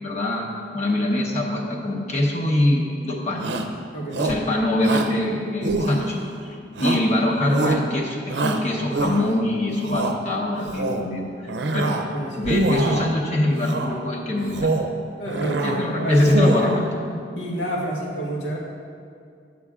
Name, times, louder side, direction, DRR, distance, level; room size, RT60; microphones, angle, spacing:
voice 1, 0.0-3.5 4.2-6.2 6.4-14.7 15.6-16.9, left 1 dB, 40° left, -3 dB, 0.8 m, -23 dB
Shout, 3.4-3.8 4.1-4.5 4.8-5.2 5.6-6.3 6.8-7.2 7.5-7.9 8.3-9.4 9.8-10.2 10.6-11.1 11.5-12.1 12.4-13.1 13.6-14.0 14.4-14.9 15.3-15.8 16.1-16.8, right 2 dB, 75° right, 0.6 m, -25 dB
voice 2, 3.9-4.2 12.1-12.5 15.2-16.2 17.4-18.6, right 1 dB, 85° left, -2 dB, 1.4 m, -28 dB
9.5 x 6.1 x 3.6 m, 2.3 s
head